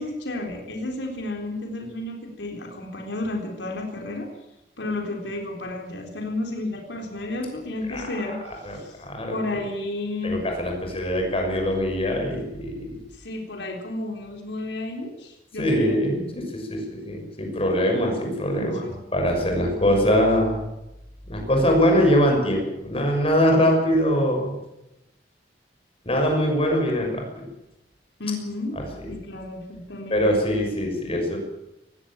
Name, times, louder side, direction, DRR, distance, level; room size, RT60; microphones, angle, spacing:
voice 1, 0.0-4.3 4.8-9.0 9.3-10.4 13.1-16.0 18.3-18.9 19.7-19.8 28.2-28.8 29.1-30.2, left 2 dB, 90° left, 1 dB, 3.9 m, -32 dB
voice 2, 8.6-9.4 10.2-13.0 15.6-18.8 19.1-20.6 21.3-24.6 26.0-27.5 28.8-28.9 30.1-31.4, equal, 35° left, 2 dB, 6.2 m, -22 dB
19.5 x 16.5 x 8.9 m, 0.91 s
head